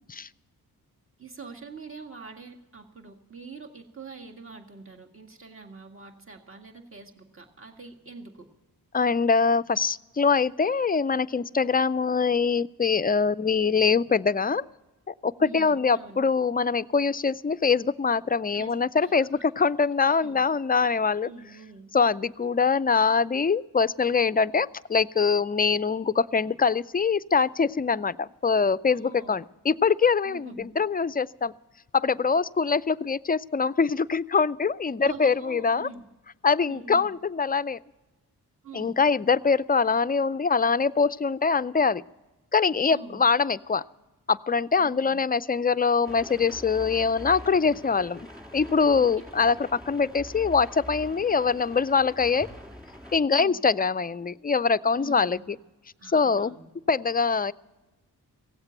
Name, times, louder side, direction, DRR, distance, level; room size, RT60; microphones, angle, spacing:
voice 1, 1.2-8.5 15.4-16.2 18.5-19.5 20.2-20.4 21.2-21.9 28.9-29.4 30.3-30.7 35.0-36.0 36.7-37.1 38.6-38.9 42.9-43.2 44.8-45.2 48.9-49.1 53.3-53.6 55.0-55.5 56.0-56.7, right 4 dB, 30° right, 2 dB, 2.0 m, -44 dB
voice 2, 8.9-14.7 15.1-21.3 21.9-31.5 31.9-35.9 36.4-37.8 38.7-42.0 42.5-43.8 44.3-48.2 48.5-52.5 53.1-55.4 56.1-56.5 56.9-57.5, left 5 dB, 25° left, 17 dB, 0.4 m, -23 dB
sound 1, 46.0-53.2, left 1 dB, ahead, 3.1 m, -44 dB
17.0 x 8.0 x 8.9 m, 1.1 s
cardioid pair, 50°, 39 cm